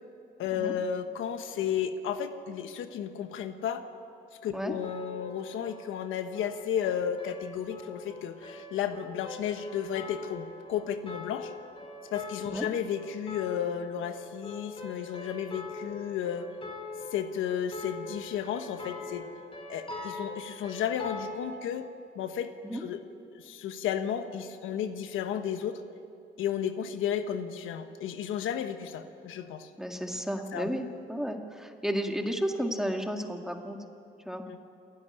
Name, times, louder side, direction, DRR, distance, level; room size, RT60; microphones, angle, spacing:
voice 1, 0.4-3.8 4.4-11.5 12.1-16.5 17.1-19.3 19.7-21.9 22.1-23.0 23.3-25.8 26.4-29.7 30.5-30.7 34.5-34.6, left 8 dB, 85° left, 8 dB, 1.2 m, -33 dB
sound 1, 4.8-21.3, left 3 dB, 25° left, 5.2 m, -43 dB
voice 2, 29.8-33.8 34.3-34.4, equal, ahead, 3 dB, 2.1 m, -32 dB
28.0 x 11.0 x 9.8 m, 2.7 s
cardioid pair, 90°, 20 cm